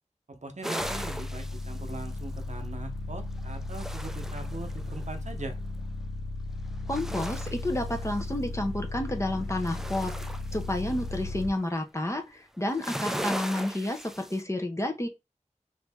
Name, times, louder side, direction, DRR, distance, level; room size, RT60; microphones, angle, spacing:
voice 1, 0.3-5.6, right 3 dB, 65° right, 0.7 m, -41 dB
sound 1, 0.6-2.6 3.4-5.1 6.7-8.6 9.1-11.5 12.6-14.4, equal, 5° right, 0.4 m, -38 dB
sound 2, 0.8-11.5, left 2 dB, 75° left, 0.7 m, -36 dB
voice 2, 6.9-10.1 10.5-15.1, left 1 dB, 20° left, 0.7 m, -30 dB
3.1 x 2.7 x 3.5 m
wide cardioid pair, 55°, 13 cm